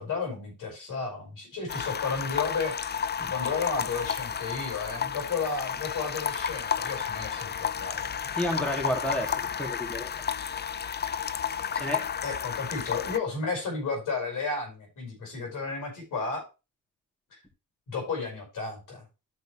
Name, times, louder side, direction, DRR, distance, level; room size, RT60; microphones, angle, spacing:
voice 1, 0.0-2.8 3.3-8.3 12.2-16.5 17.9-19.0, left 4 dB, 80° left, 1 dB, 5.7 m, -33 dB
sound 1, 1.7-13.2, left 7 dB, 35° left, 0.5 m, -32 dB
voice 2, 8.4-10.1 11.7-12.0, equal, 5° left, 2 dB, 2.5 m, -31 dB
13.0 x 5.2 x 3.3 m, 0.28 s
cardioid pair, 80°, 31 cm